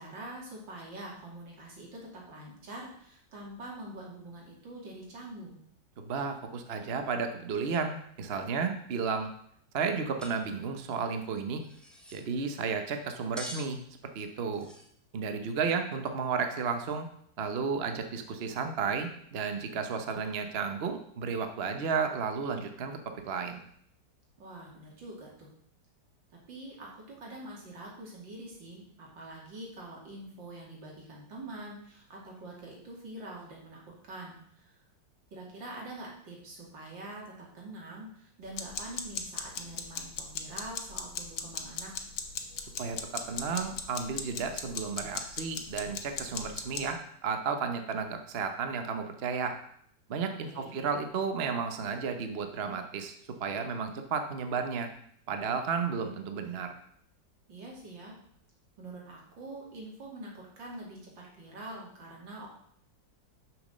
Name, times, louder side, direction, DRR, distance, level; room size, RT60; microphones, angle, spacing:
voice 1, 0.0-5.6 24.4-25.5 26.5-34.7 35.3-41.9 50.5-50.8 57.5-58.2 58.8-62.5, right 1 dB, 75° right, -2 dB, 3.2 m, -45 dB
voice 2, 6.0-9.3 9.7-11.6 12.1-13.8 14.1-14.7 15.1-17.1 17.4-23.0 23.2-23.6 42.8-49.6 50.1-54.9 55.3-56.8, right 5 dB, 45° right, 6 dB, 0.8 m, -33 dB
sound 1, 10.2-10.4 10.6-10.7 11.6-12.2 13.4-13.7 14.5-14.9, equal, ahead, 1.1 m, -44 dB
sound 2, 38.5-46.9, left 7 dB, 80° left, 1.7 m, -37 dB
7.1 x 6.1 x 6.5 m, 0.66 s
omnidirectional pair, 2.0 m